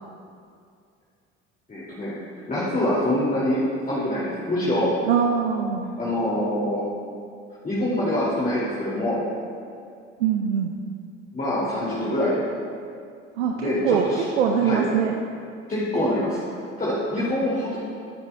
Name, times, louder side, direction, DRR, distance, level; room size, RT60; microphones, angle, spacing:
voice 1, 1.7-2.1 2.5-3.6 3.9-4.9 6.0-6.8 7.6-9.2 11.3-12.4 13.5-14.2 14.6-14.8 15.7-16.4 16.8-17.8, left 1 dB, 25° left, -8 dB, 2.4 m, -25 dB
voice 2, 5.0-5.9 10.2-10.8 13.4-14.1 14.3-15.1, right 8 dB, 85° right, 3 dB, 0.6 m, -23 dB
17.5 x 7.0 x 2.3 m, 2.3 s
hypercardioid pair, 60°, 34 cm